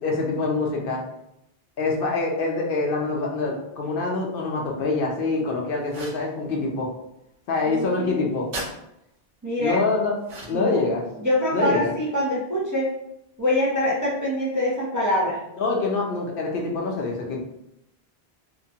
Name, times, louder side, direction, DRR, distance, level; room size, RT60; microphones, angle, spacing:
voice 1, 0.0-1.0 1.8-6.9 7.5-8.5 9.6-10.1 10.5-11.0 11.5-11.9 15.6-17.4, left 3 dB, 65° left, -1 dB, 0.7 m, -25 dB
sound 1, 5.9-6.3 8.5-8.7 10.2-10.7, right 2 dB, 55° right, 0.7 m, -35 dB
voice 2, 7.7-8.2 9.4-9.8 10.5-10.8 11.2-12.9 13.4-15.4, left 1 dB, 25° right, -7 dB, 0.4 m, -24 dB
2.8 x 2.2 x 2.7 m, 0.82 s
omnidirectional pair, 1.0 m